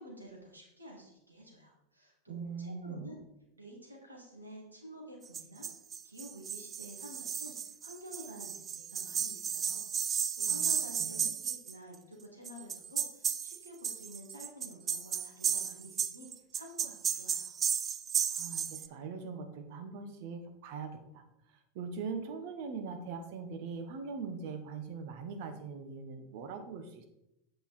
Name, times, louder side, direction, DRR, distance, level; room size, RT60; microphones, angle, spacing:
voice 1, 0.0-3.2 3.5-5.7 6.0-17.5, equal, 90° right, -1 dB, 2.4 m, -50 dB
voice 2, 2.3-3.1 10.5-10.7 11.0-11.1 18.3-21.2 21.7-27.1, right 5 dB, 55° right, 7 dB, 1.4 m, -41 dB
sound 1, 5.3-11.7 12.5-18.9, right 7 dB, 30° right, 0.5 m, -34 dB
8.5 x 5.7 x 4.3 m, 0.86 s
figure-of-eight pair, 85°, 0 cm